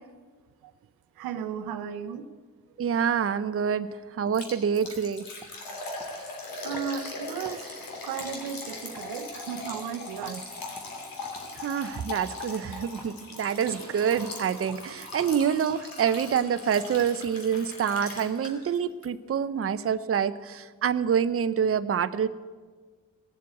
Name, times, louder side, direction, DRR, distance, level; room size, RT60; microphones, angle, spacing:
voice 1, 1.2-2.3 6.6-7.7 8.0-10.4, right 8 dB, 90° right, 9 dB, 0.8 m, -35 dB
voice 2, 2.8-5.2 11.6-22.3, right 7 dB, 40° right, 11 dB, 0.7 m, -27 dB
sound 1, 4.2-4.4 4.8-5.0 5.4-6.1 6.7-6.9 7.4-7.6 8.2-8.3 8.9-9.1 9.6-9.8 10.2-10.4 10.7-10.9 11.3-11.5 12.0-12.1 13.0-13.1 13.7-13.8 14.1-14.3 14.7-14.8 15.2-15.3 15.7-15.8, right 1 dB, 5° right, 1.4 m, -48 dB
Liquid, 4.3-18.8 19.0-19.1 19.6-19.7, left 3 dB, 75° left, 3.0 m, -40 dB
17.5 x 7.5 x 8.3 m, 1.5 s
supercardioid pair, 60°, 35 cm